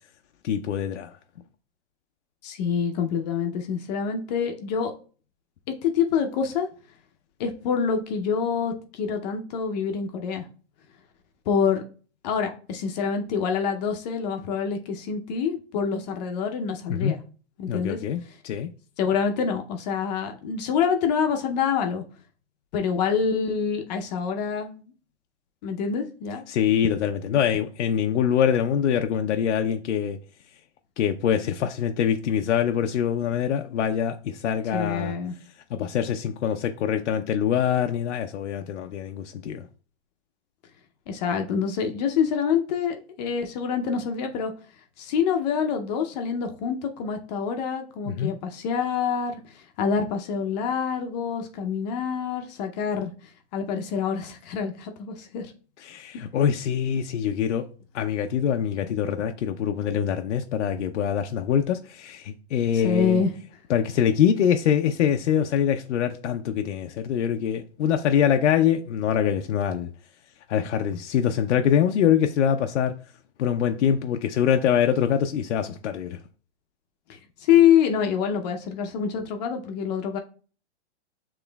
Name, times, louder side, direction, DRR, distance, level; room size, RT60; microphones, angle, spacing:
voice 1, 0.4-1.2 16.9-17.1 17.7-18.7 26.5-30.2 31.0-35.1 35.7-39.7 48.0-48.3 55.8-57.7 57.9-63.2 63.7-69.9 70.5-72.9 73.4-76.2, left 8 dB, 85° left, 0.5 m, -24 dB
voice 2, 2.4-4.9 5.8-6.7 7.4-10.4 11.5-11.8 12.2-17.2 17.6-18.0 19.0-22.0 22.7-24.9 25.6-26.4 34.7-35.3 41.1-44.5 45.0-53.1 53.5-55.5 62.7-63.3 77.1-80.2, left 7 dB, 35° left, 0.6 m, -26 dB
7.0 x 3.0 x 2.2 m
hypercardioid pair, 145°, 35 cm